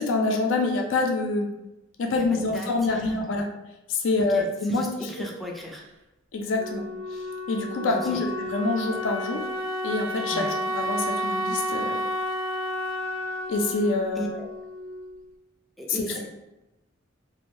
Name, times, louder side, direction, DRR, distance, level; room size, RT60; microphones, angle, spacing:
voice 1, 0.0-1.5 2.0-3.5 3.9-5.1 6.3-6.8 7.1-7.2 7.5-9.4 9.8-12.0 13.5-14.3 15.9-16.3, left 3 dB, 70° left, 2 dB, 0.4 m, -26 dB
voice 2, 2.1-3.2 4.2-5.8 7.9-8.2 10.3-10.6 14.2-14.5 15.8-16.3, right 1 dB, ahead, -1 dB, 0.3 m, -36 dB
Wind instrument woodwind instrument, 6.6-15.2, equal, 80° right, 0.3 m, -31 dB
2.5 x 2.1 x 3.0 m, 0.99 s
head